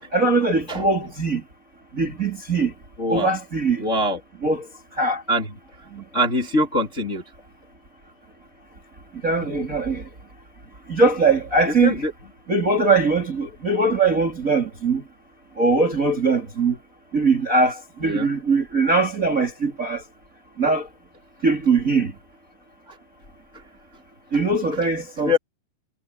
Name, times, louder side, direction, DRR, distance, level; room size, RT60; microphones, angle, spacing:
voice 1, 0.1-1.4 1.9-2.7 3.1-3.9 4.4-5.2 5.9-6.0 9.2-10.1 10.9-12.1 12.5-15.0 15.6-16.8 17.1-20.0 20.6-20.9 21.4-22.1 24.3-25.4, right 3 dB, 25° right, 2.4 m, -21 dB
voice 2, 3.0-3.3 3.8-4.2 5.3-5.5 6.1-7.2 11.8-12.1 18.0-18.3 25.3-25.4, left 1 dB, 20° left, 2.3 m, -22 dB
omnidirectional pair, 4.9 m